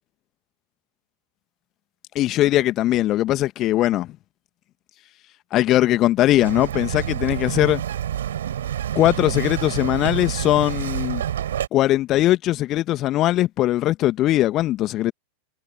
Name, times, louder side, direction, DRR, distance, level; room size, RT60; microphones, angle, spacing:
voice 1, 2.2-4.1 5.5-7.8 9.0-11.2 11.7-15.1, left 15 dB, 35° left, 1.8 m, -20 dB
Bird vocalization bird call bird song, 6.4-11.7, right 10 dB, 60° right, 7.4 m, -28 dB
figure-of-eight pair, 90°, 0 cm